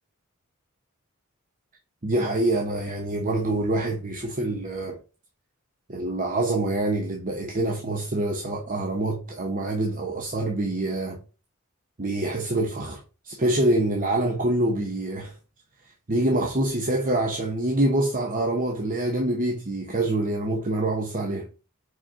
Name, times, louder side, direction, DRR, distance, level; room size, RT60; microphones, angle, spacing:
voice 1, 2.0-5.0 5.9-11.2 12.0-15.3 16.1-21.5, right 1 dB, 40° right, 1.0 m, -26 dB
5.2 x 5.1 x 3.8 m
head